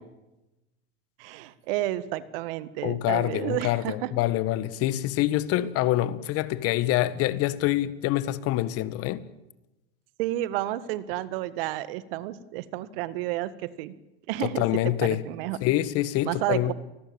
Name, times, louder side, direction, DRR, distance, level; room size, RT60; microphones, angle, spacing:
voice 1, 1.2-4.1 10.2-14.0 14.3-15.6 16.2-16.7, right 14 dB, 65° right, 1.9 m, -31 dB
voice 2, 2.8-9.2 14.4-15.2 15.6-16.7, left 14 dB, 50° left, 1.7 m, -26 dB
29.0 x 20.5 x 8.9 m
hypercardioid pair, 110°, 31 cm